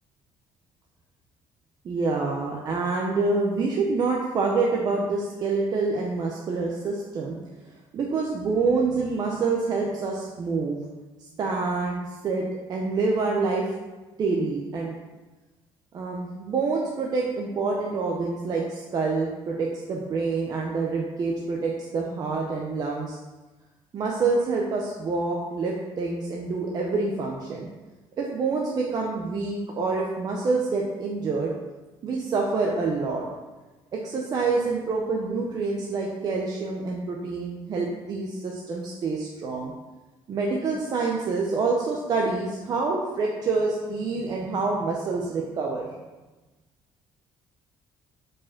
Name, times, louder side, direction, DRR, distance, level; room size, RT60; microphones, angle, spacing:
voice 1, 1.8-7.4 7.9-10.8 11.2-13.7 14.2-14.9 15.9-23.2 23.9-27.7 28.2-31.5 32.0-33.3 33.9-39.7 40.3-45.9, right 3 dB, 40° right, -1 dB, 0.8 m, -27 dB
4.9 x 4.6 x 6.0 m, 1.2 s
cardioid pair, 150°, 10 cm